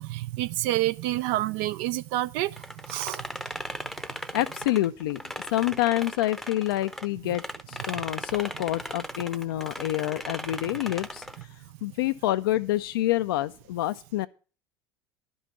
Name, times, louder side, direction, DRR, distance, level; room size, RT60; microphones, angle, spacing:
voice 1, 0.0-2.5 2.9-3.2, right 16 dB, 55° right, 0.4 m, -28 dB
sound 1, 2.6-7.1 7.3-11.4, equal, ahead, 0.8 m, -37 dB
voice 2, 4.3-5.2 5.5-11.3 11.8-14.3, left 15 dB, 65° left, 0.5 m, -27 dB
11.5 x 5.4 x 7.6 m
figure-of-eight pair, 70°, 13 cm